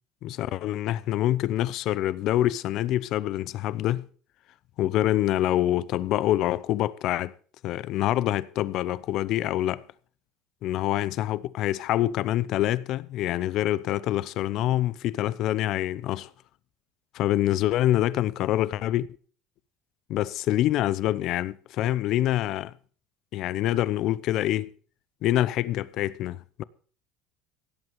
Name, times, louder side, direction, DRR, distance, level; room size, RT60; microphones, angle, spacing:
voice 1, 0.2-4.0 4.8-7.3 7.6-9.8 10.6-16.3 17.1-19.1 20.1-22.7 23.3-24.7 25.2-26.6, left 13 dB, 55° left, 0.7 m, -26 dB
17.0 x 7.9 x 5.5 m
supercardioid pair, 120°, 0 cm